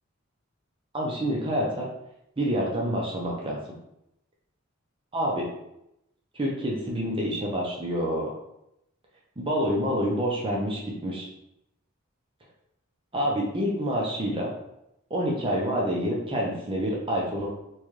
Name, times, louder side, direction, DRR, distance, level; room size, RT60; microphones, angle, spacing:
voice 1, 0.9-1.9 2.4-3.6 5.1-5.5 6.3-8.3 9.4-11.3 13.1-14.5 15.1-17.5, equal, 25° right, -2 dB, 0.6 m, -27 dB
4.0 x 2.3 x 3.1 m, 0.82 s
head